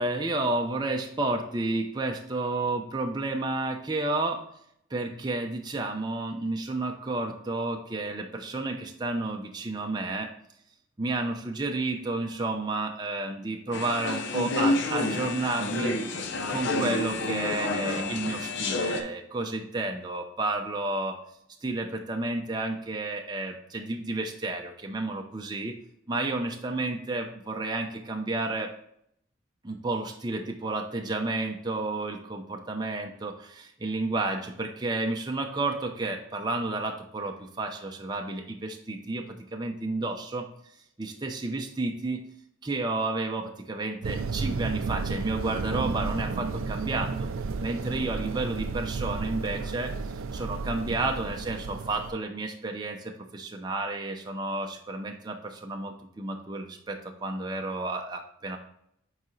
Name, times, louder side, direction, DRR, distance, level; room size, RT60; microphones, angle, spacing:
voice 1, 0.0-4.4 4.9-10.3 11.0-16.0 16.5-21.2 21.6-25.8 26.1-28.7 29.6-39.3 39.5-40.5 41.0-42.2 42.6-47.3 47.6-49.9 50.3-58.6, right 2 dB, 20° right, 2 dB, 0.6 m, -31 dB
sound 1, 13.7-19.0, left 2 dB, 55° left, 0.8 m, -29 dB
sound 2, 44.0-52.1, right 4 dB, 75° right, 0.4 m, -32 dB
8.0 x 4.9 x 3.1 m, 0.73 s
head